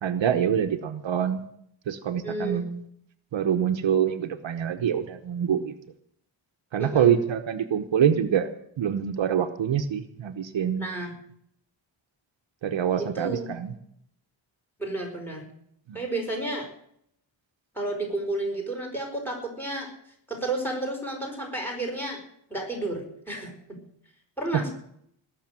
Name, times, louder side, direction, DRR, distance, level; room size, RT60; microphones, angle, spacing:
voice 1, 0.0-1.4 1.9-2.8 3.3-5.7 6.7-8.5 8.8-10.9 12.6-13.7 15.9-16.0, right 9 dB, 65° right, 7 dB, 1.1 m, -25 dB
voice 2, 2.2-2.6 6.8-7.1 10.8-11.1 13.0-13.5 14.8-15.5 15.9-16.7 17.7-19.9 20.3-22.2 22.5-23.8 24.4-24.7, right 2 dB, 5° left, 2 dB, 4.7 m, -31 dB
19.5 x 6.7 x 9.1 m, 0.71 s
wide cardioid pair, 145°, 48 cm